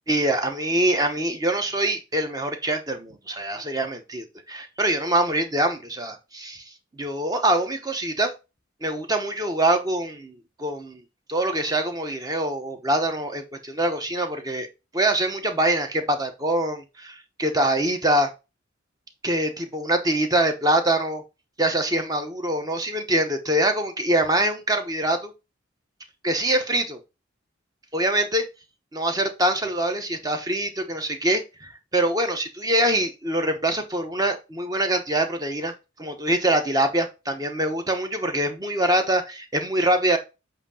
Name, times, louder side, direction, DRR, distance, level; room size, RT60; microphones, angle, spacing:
voice 1, 0.1-6.6 7.0-8.3 8.8-10.3 10.6-11.0 11.3-14.7 14.9-18.3 19.2-21.2 21.6-25.3 26.2-27.0 27.9-28.4 28.9-35.7 36.0-40.2, right 1 dB, 20° right, 6 dB, 0.9 m, -24 dB
8.0 x 2.7 x 5.5 m, 0.27 s
head